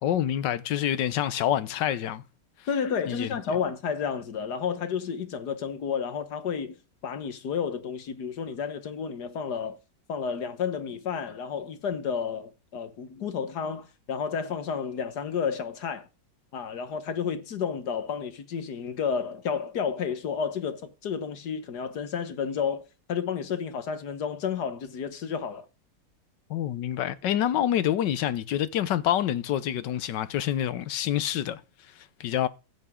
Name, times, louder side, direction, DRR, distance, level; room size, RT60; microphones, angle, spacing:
voice 1, 0.0-2.2 3.1-3.3 26.5-31.6 32.0-32.5, left 11 dB, 85° left, 1.5 m, -27 dB
voice 2, 2.7-9.8 10.1-16.1 16.5-25.7, left 6 dB, 70° left, 1.8 m, -31 dB
15.5 x 7.9 x 3.7 m
omnidirectional pair, 1.9 m